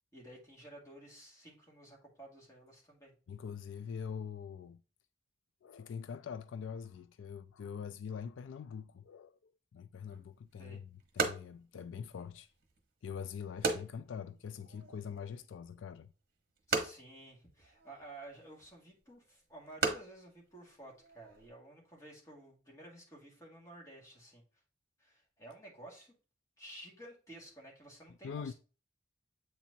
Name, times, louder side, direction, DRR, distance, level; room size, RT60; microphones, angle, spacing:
voice 1, 0.1-3.1 10.6-10.8 16.7-24.4 25.0-26.1 26.6-28.5, right 1 dB, 15° left, 2.0 m, -53 dB
voice 2, 3.3-4.8 5.6-12.5 13.0-16.1 28.2-28.5, left 7 dB, 80° left, 0.3 m, -44 dB
sound 1, 10.1-21.5, right 3 dB, 50° right, 1.1 m, -40 dB
8.0 x 4.4 x 2.7 m
head